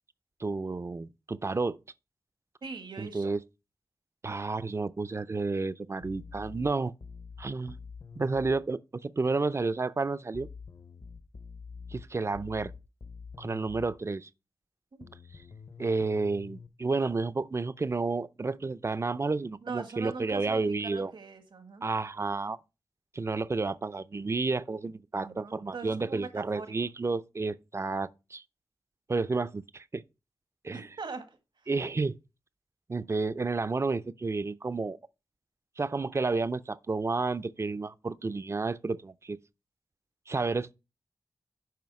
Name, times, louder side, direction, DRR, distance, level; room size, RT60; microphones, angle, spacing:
voice 1, 0.4-1.8 3.0-3.4 4.2-6.9 7.4-7.8 8.2-10.5 11.9-12.7 13.4-14.3 15.8-21.1 21.8-22.6 23.1-28.4 29.1-30.0 30.6-30.9 31.7-32.2 32.9-35.0 35.8-39.4 40.3-40.7, right 3 dB, 35° right, 0.5 m, -31 dB
voice 2, 2.6-3.3 14.9-15.1 19.6-21.9 25.2-26.7 30.7-31.7, right 4 dB, 80° right, 1.8 m, -42 dB
sound 1, 6.0-8.6 10.3-14.0 15.0-16.7, left 5 dB, 60° left, 0.8 m, -46 dB
9.3 x 5.5 x 4.8 m
wide cardioid pair, 85°, 8 cm